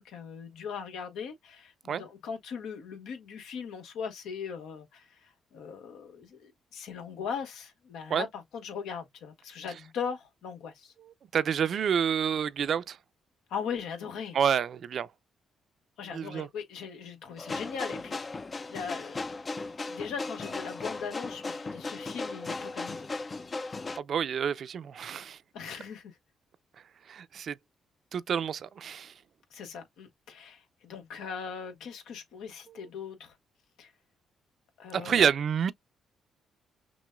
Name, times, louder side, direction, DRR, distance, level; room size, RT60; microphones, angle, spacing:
voice 1, 0.0-10.9 13.5-14.4 16.0-18.2 18.7-19.2 19.9-23.1 25.5-26.1 29.5-33.3 33.8-33.9 34.8-35.3, left 6 dB, 85° left, 1.3 m, -39 dB
voice 2, 11.3-13.0 14.3-15.1 16.1-16.5 24.0-25.4 27.1-27.6 28.1-29.1 34.9-35.7, right 8 dB, 60° right, 0.5 m, -28 dB
sound 1, 17.4-24.0, left 3 dB, 30° left, 0.4 m, -37 dB
6.1 x 2.1 x 2.3 m
cardioid pair, 90°, 0 cm